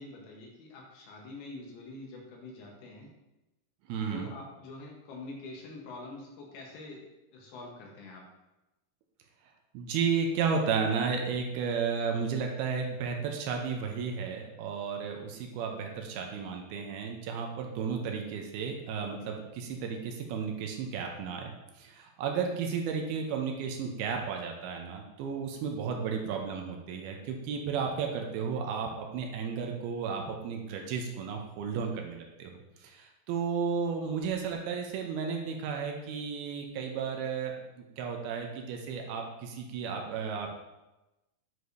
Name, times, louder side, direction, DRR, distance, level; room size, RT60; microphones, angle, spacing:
voice 1, 0.0-3.1 4.1-7.1 7.3-8.3, left 2 dB, 75° left, -1 dB, 3.0 m, -45 dB
voice 2, 3.9-4.3 9.7-21.5 21.8-37.5 38.0-40.6, right 6 dB, 80° right, 2 dB, 2.5 m, -33 dB
9.4 x 4.8 x 2.7 m, 1.0 s
omnidirectional pair, 4.6 m